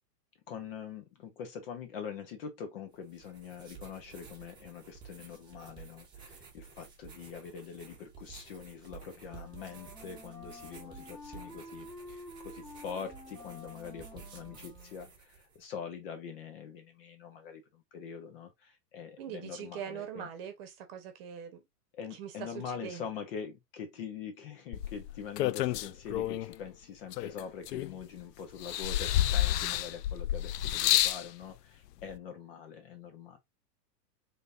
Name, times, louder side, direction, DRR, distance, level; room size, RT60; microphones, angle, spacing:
voice 1, 0.5-20.3 22.0-33.4, left 7 dB, 35° left, 0.8 m, -44 dB
sound 1, 2.9-15.7, right 5 dB, 10° right, 1.0 m, -52 dB
Wind instrument woodwind instrument, 9.1-15.2, left 2 dB, 10° left, 1.2 m, -50 dB
voice 2, 19.2-21.7 22.1-23.0 29.5-29.8, right 8 dB, 35° right, 1.0 m, -42 dB
sound 2, 24.7-26.5 27.1-28.2 28.6-31.2 32.1-32.2, left 13 dB, 75° left, 0.6 m, -29 dB
3.9 x 3.5 x 2.6 m
supercardioid pair, 160°, 49 cm